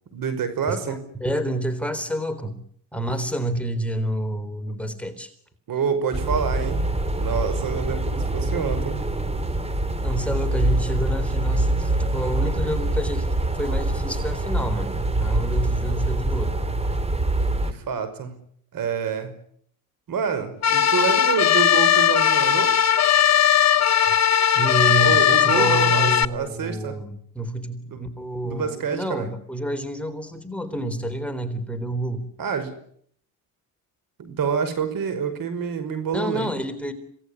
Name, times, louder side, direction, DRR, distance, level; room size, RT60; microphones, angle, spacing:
voice 1, 0.1-1.0 5.7-6.9 7.1-9.0 17.6-18.4 18.7-19.3 20.1-22.8 25.0-27.0 27.9-28.0 28.4-29.3 32.4-32.7 34.2-36.5, right 7 dB, 60° right, 11 dB, 5.5 m, -27 dB
voice 2, 0.7-2.6 2.9-5.3 10.0-14.9 15.2-16.6 24.5-32.3 36.1-36.9, right 1 dB, 5° left, 6 dB, 3.8 m, -29 dB
sound 1, 6.1-17.7, right 2 dB, 15° right, 2.9 m, -24 dB
sound 2, 20.6-26.2, left 9 dB, 45° left, 1.1 m, -18 dB
27.0 x 18.5 x 9.9 m, 0.65 s
cardioid pair, 115°, 37 cm